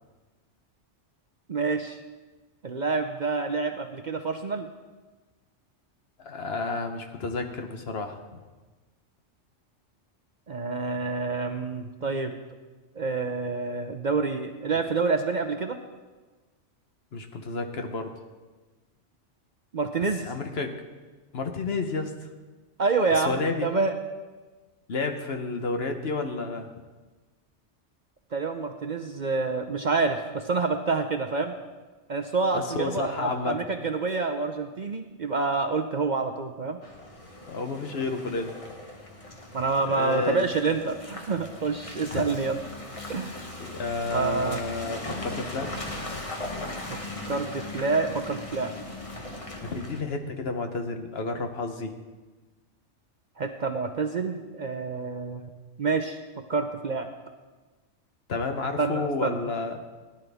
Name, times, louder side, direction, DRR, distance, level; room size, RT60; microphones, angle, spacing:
voice 1, 1.5-2.0 2.6-4.7 10.5-12.4 13.0-15.8 19.7-20.3 22.8-23.9 28.3-31.5 32.1-36.8 39.5-42.6 43.1-43.3 44.1-44.6 47.3-48.7 53.4-55.4 55.8-56.2 56.5-57.1 58.8-59.4, right 4 dB, 50° right, 6 dB, 0.7 m, -27 dB
voice 2, 6.2-8.4 17.1-18.1 20.2-20.8 21.3-22.1 23.1-23.7 24.9-26.8 32.5-33.6 37.5-38.7 39.8-40.4 42.1-42.4 43.6-45.7 49.6-51.9 58.3-59.7, left 3 dB, 60° left, 5 dB, 1.2 m, -31 dB
Car passing by / Engine, 36.8-50.0, left 2 dB, 30° left, 1.3 m, -39 dB
17.5 x 11.0 x 3.5 m, 1.3 s
omnidirectional pair, 1.2 m